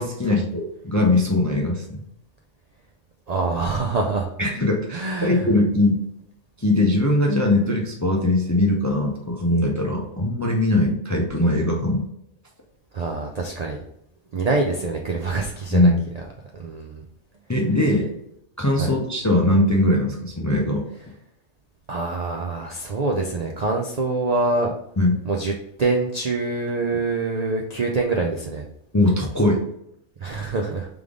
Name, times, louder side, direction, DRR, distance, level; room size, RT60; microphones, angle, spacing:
voice 1, 0.0-2.0 4.4-6.0 6.6-12.0 15.7-16.0 17.5-18.1 18.6-20.8 25.0-25.2 28.9-29.6, left 1 dB, 25° left, 0 dB, 0.4 m, -20 dB
voice 2, 3.3-4.3 4.9-5.5 12.9-13.8 14.3-15.9 16.5-17.0 18.8-18.9 21.9-24.7 25.2-25.5 25.8-28.6 30.2-30.9, right 3 dB, 60° right, 1 dB, 0.4 m, -25 dB
3.5 x 3.4 x 3.6 m, 0.76 s
omnidirectional pair, 1.2 m